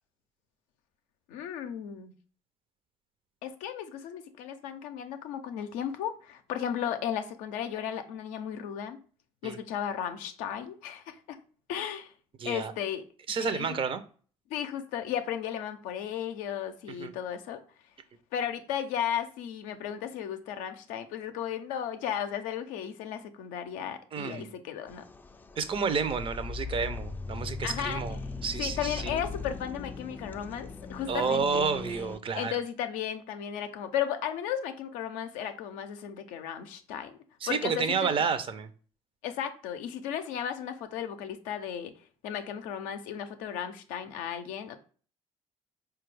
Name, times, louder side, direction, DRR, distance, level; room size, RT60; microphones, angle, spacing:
voice 1, 1.3-2.1 3.4-9.0 9.4-11.4 11.7-12.1 12.4-13.1 13.4-13.8 14.5-17.6 18.3-25.1 27.6-28.0 28.6-31.7 32.4-37.2 37.5-38.1 39.2-41.9 42.2-44.8, left 9 dB, 80° left, 0.4 m, -35 dB
voice 2, 12.4-12.7 13.3-14.0 16.9-17.1 24.1-24.5 25.6-29.2 31.1-32.5 37.4-38.7, right 5 dB, 45° right, 0.5 m, -30 dB
sound 1, 24.9-32.2, left 4 dB, 15° left, 0.3 m, -39 dB
4.4 x 2.3 x 3.1 m
supercardioid pair, 60°, 13 cm